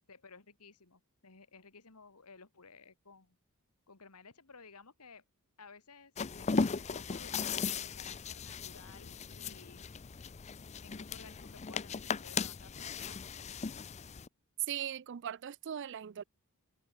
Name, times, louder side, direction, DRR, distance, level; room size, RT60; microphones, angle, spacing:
voice 1, 0.0-3.4 3.9-5.2 5.6-9.9 10.8-13.2, left 4 dB, 85° left, 2.2 m, -56 dB
sound 1, 6.2-14.3, left 5 dB, 30° left, 0.5 m, -37 dB
voice 2, 14.7-16.2, right 9 dB, 55° right, 0.4 m, -40 dB
head